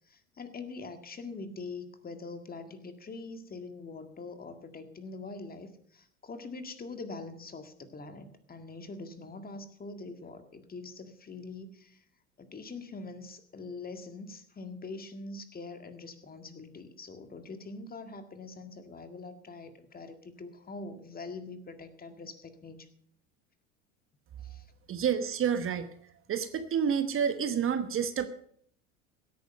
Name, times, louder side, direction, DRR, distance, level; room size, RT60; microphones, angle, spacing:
voice 1, 0.1-12.0 12.4-22.9 24.4-24.7, left 3 dB, 25° left, 8 dB, 1.9 m, -43 dB
voice 2, 24.9-26.0 26.3-28.3, right 7 dB, 35° right, 10 dB, 1.1 m, -29 dB
16.5 x 9.4 x 5.3 m, 0.63 s
hypercardioid pair, 80°, 39 cm